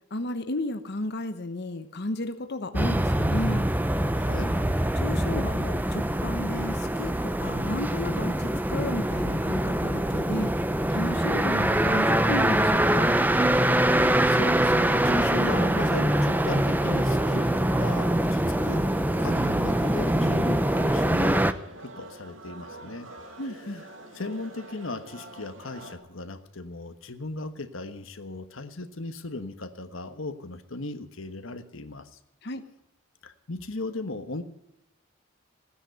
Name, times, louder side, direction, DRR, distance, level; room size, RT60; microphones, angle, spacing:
voice 1, 0.1-3.7 5.0-10.5 10.9-13.2 23.4-23.8 32.4-32.6, left 2 dB, 50° left, 8 dB, 1.0 m, -33 dB
sound 1, 2.7-21.5, right 1 dB, 10° right, 0.6 m, -24 dB
voice 2, 4.1-4.7 14.2-21.5 21.8-23.1 24.1-32.2 33.2-34.4, left 2 dB, 70° left, 9 dB, 1.3 m, -37 dB
sound 2, 15.3-26.0, right 2 dB, 65° right, 2.4 m, -45 dB
16.5 x 9.9 x 7.9 m, 0.79 s
head